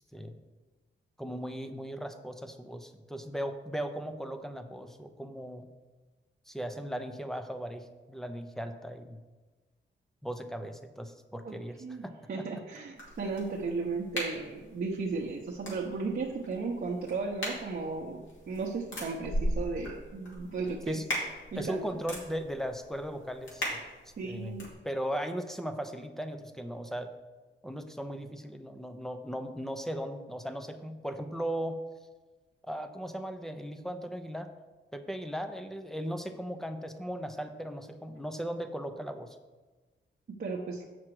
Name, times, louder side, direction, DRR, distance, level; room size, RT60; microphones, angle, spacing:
voice 1, 1.2-5.7 6.5-9.2 10.2-12.6 20.9-21.0 21.5-23.7 24.2-24.6 24.8-27.1 27.6-31.8 32.6-34.5 34.9-39.4, equal, ahead, 8 dB, 0.7 m, -37 dB
voice 2, 11.4-21.0 21.5-21.9 24.2-24.7 40.4-40.8, right 4 dB, 50° right, -3 dB, 0.9 m, -35 dB
sound 1, 13.0-24.7, equal, 70° left, 2.8 m, -39 dB
7.3 x 6.0 x 4.8 m, 1.3 s
cardioid pair, 95°, 21 cm